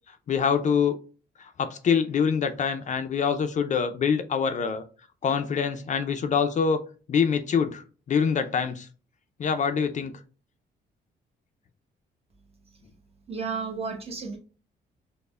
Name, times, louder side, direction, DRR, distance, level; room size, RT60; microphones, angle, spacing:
voice 1, 0.3-1.0 1.4-4.8 5.2-6.8 7.1-8.9 9.4-10.1, left 6 dB, 45° left, 8 dB, 0.4 m, -25 dB
voice 2, 13.3-14.4, right 5 dB, 35° right, 2 dB, 0.9 m, -32 dB
5.2 x 2.1 x 2.2 m, 0.38 s
cardioid pair, 100°, 18 cm